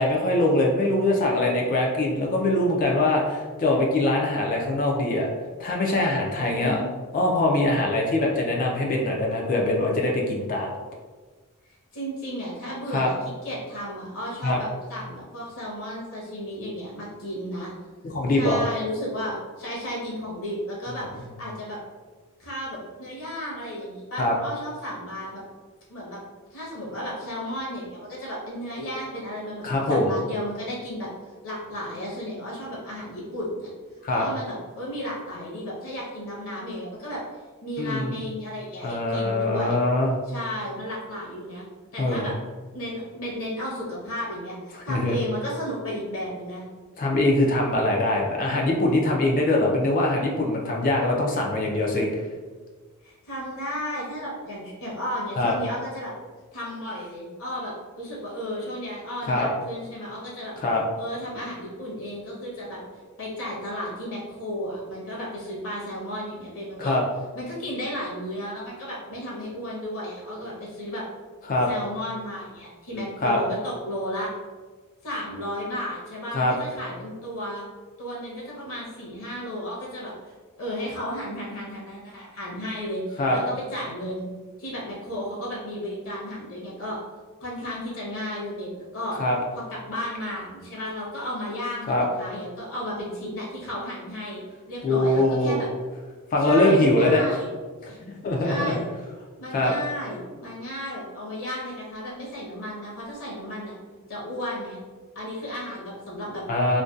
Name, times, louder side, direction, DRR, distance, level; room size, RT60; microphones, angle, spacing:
voice 1, 0.0-5.3 5.6-6.8 7.1-10.7 12.9-13.1 14.4-14.6 18.0-18.6 24.2-24.3 29.6-30.1 34.0-34.2 37.8-38.2 38.8-40.1 42.0-42.3 44.9-45.2 47.0-52.1 55.4-55.5 59.3-59.5 60.6-60.8 66.8-67.0 71.5-71.7 73.2-73.4 76.3-76.6 83.2-83.4 89.2-89.4 91.9-92.1 94.8-95.6 96.3-97.2 97.8-97.9 98.2-98.7 99.5-99.8 106.5-106.8, left 1 dB, 35° left, -1 dB, 0.3 m, -22 dB
voice 2, 6.4-6.9 11.9-13.2 13.4-17.7 18.4-21.8 22.4-25.4 25.9-26.2 26.5-31.1 31.4-33.7 34.1-37.2 37.6-39.8 40.3-41.7 41.9-42.3 42.7-46.6 53.0-56.1 56.5-60.6 61.0-62.8 63.2-67.0 67.3-71.0 71.7-74.3 75.0-77.6 78.0-84.3 84.6-87.0 87.4-89.2 89.7-94.4 94.7-95.7 96.4-97.5 97.9-98.1 98.4-98.9 99.4-103.7 104.1-104.8 105.1-106.4, equal, 65° left, -5 dB, 0.7 m, -33 dB
2.5 x 2.1 x 2.3 m, 1.4 s
head